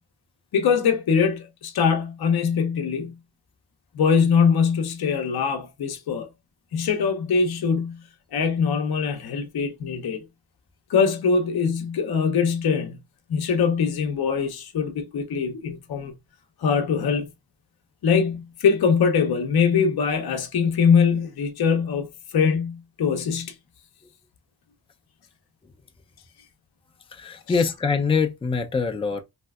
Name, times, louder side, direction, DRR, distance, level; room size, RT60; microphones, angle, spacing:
voice 1, 0.5-3.1 3.9-6.3 6.7-8.0 8.3-10.2 10.9-13.0 13.3-16.1 16.6-17.3 18.0-23.5, left 6 dB, 55° left, 0.6 m, -22 dB
voice 2, 27.2-29.2, left 5 dB, 15° left, 0.3 m, -24 dB
3.1 x 2.7 x 2.3 m
wide cardioid pair, 135°, 45 cm